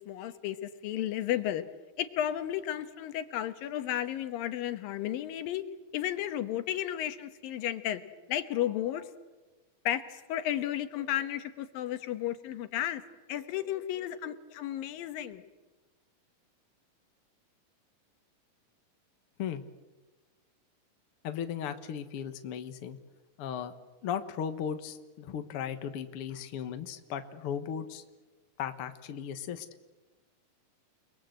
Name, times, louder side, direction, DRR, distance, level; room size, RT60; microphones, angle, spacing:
voice 1, 0.0-1.6 2.0-5.6 5.9-8.0 8.3-9.1 9.9-13.0 13.3-15.4, left 12 dB, 85° left, 10 dB, 2.9 m, -33 dB
voice 2, 21.2-23.0 23.4-23.7 24.0-28.0 28.6-29.7, left 8 dB, 55° left, 8 dB, 1.8 m, -36 dB
29.5 x 21.5 x 7.9 m, 1.2 s
omnidirectional pair, 3.9 m